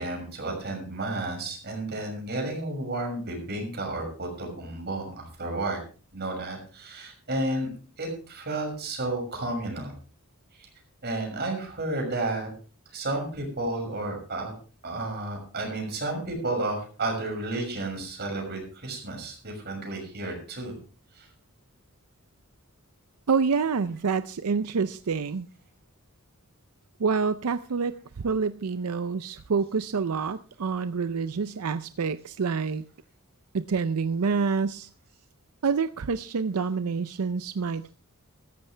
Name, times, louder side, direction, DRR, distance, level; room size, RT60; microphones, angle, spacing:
voice 1, 0.0-5.8 6.1-7.7 8.0-9.9 10.6-10.7 11.0-12.5 12.9-14.5 14.8-20.8 21.1-21.3, right 2 dB, 50° right, 2 dB, 6.4 m, -32 dB
voice 2, 23.3-25.5 27.0-32.8 33.5-34.9 35.6-37.9, right 5 dB, 90° right, 12 dB, 0.5 m, -27 dB
15.0 x 14.0 x 3.3 m, 0.38 s
head